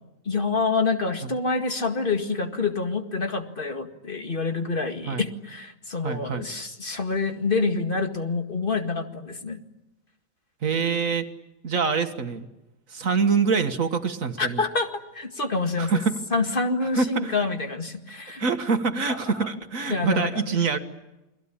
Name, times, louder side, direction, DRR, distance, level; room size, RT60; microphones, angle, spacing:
voice 1, 0.3-9.6 14.4-16.0 16.3-18.5 19.4-19.5 19.9-20.7, left 4 dB, 40° left, 5 dB, 2.2 m, -27 dB
voice 2, 6.0-6.5 10.6-11.3 11.6-12.5 12.9-14.6 15.8-16.2 16.9-17.4 18.4-20.8, right 5 dB, 75° right, 7 dB, 2.0 m, -25 dB
29.5 x 21.5 x 8.8 m, 0.97 s
omnidirectional pair, 1.4 m